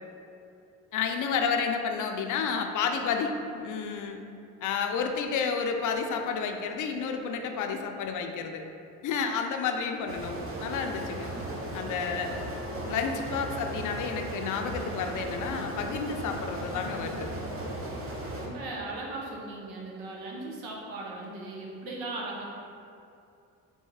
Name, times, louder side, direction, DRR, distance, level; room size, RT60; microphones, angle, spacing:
voice 1, 0.9-4.2 4.6-8.6 9.0-11.3 11.7-12.4 12.8-17.3, left 6 dB, 55° left, 5 dB, 0.5 m, -31 dB
sound 1, 10.1-18.5, right 1 dB, 35° right, 0.8 m, -36 dB
voice 2, 18.3-22.4, right 2 dB, 80° right, -2 dB, 0.9 m, -38 dB
3.6 x 2.7 x 4.7 m, 2.6 s
supercardioid pair, 70°, 36 cm